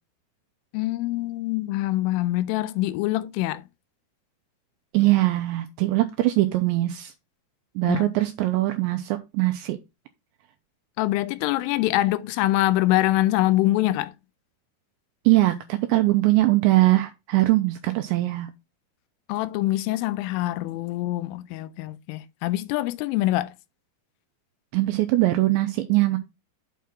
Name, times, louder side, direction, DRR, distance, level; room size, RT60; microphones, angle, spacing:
voice 1, 0.7-3.6 7.8-8.1 11.0-14.1 19.3-23.5, left 16 dB, 85° left, 3.1 m, -24 dB
voice 2, 4.9-7.1 7.8-9.8 15.3-18.5 24.7-26.2, right 18 dB, 85° right, 2.6 m, -21 dB
8.5 x 3.6 x 5.7 m
omnidirectional pair, 5.7 m